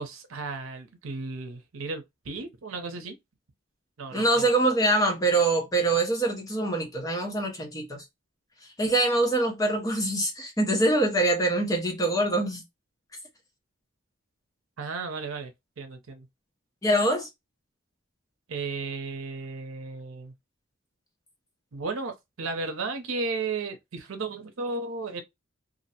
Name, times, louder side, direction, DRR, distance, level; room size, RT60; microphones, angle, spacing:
voice 1, 0.0-3.1 4.0-4.4 14.8-15.5 15.8-16.2 18.5-20.3 21.7-25.2, right 3 dB, 85° right, 0.6 m, -34 dB
voice 2, 4.1-8.0 8.8-12.6 16.8-17.3, right 2 dB, 15° left, 0.7 m, -24 dB
2.5 x 2.0 x 2.8 m
head